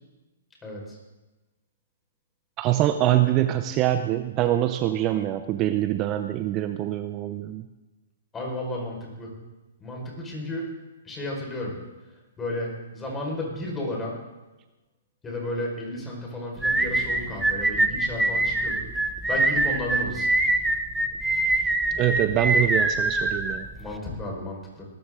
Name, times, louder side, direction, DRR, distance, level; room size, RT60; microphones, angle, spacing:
voice 1, 0.6-1.0 8.3-9.3 9.8-10.7 11.0-11.7 12.4-14.2 15.2-18.8 19.3-20.3 23.8-24.8, left 1 dB, 15° left, -1 dB, 5.0 m, -33 dB
voice 2, 2.6-7.7 22.0-23.7, right 13 dB, 30° right, 9 dB, 0.6 m, -24 dB
sound 1, 16.6-24.0, right 2 dB, 5° right, 0.9 m, -24 dB
19.0 x 13.0 x 3.8 m, 1.1 s
hypercardioid pair, 135°, 0 cm